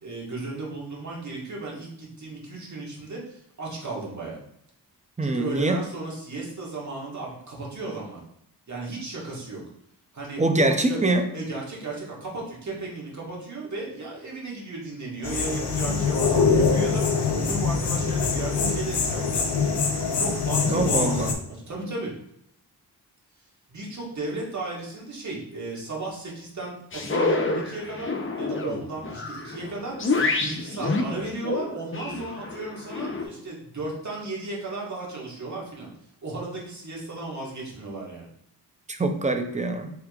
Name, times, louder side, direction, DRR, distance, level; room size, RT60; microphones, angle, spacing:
voice 1, 0.0-4.4 5.2-8.2 8.7-9.6 10.1-11.0 11.3-19.4 20.1-22.1 23.7-28.1 28.4-35.9 36.2-38.3, right 2 dB, 45° right, -4 dB, 1.6 m, -35 dB
voice 2, 5.2-5.8 10.4-11.3 20.7-21.3 38.9-39.9, right 2 dB, 20° right, 6 dB, 0.5 m, -24 dB
sound 1, 15.2-21.3, left 5 dB, 80° left, 0.7 m, -24 dB
sound 2, 26.9-33.3, left 3 dB, 30° left, 0.6 m, -28 dB
4.8 x 3.5 x 2.4 m, 0.75 s
wide cardioid pair, 80°, 39 cm